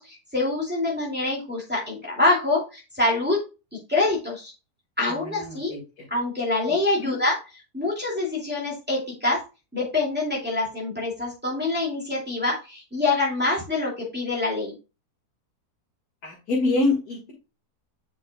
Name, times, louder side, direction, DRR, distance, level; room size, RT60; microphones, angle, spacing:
voice 1, 0.0-3.5 3.9-4.5 5.0-5.7 6.1-7.4 7.7-9.4 9.7-14.7, left 2 dB, 5° right, -5 dB, 2.3 m, -25 dB
voice 2, 5.2-5.8 7.0-7.1 16.2-17.3, left 2 dB, 70° left, -4 dB, 2.2 m, -25 dB
8.0 x 5.3 x 2.3 m, 0.29 s
omnidirectional pair, 1.7 m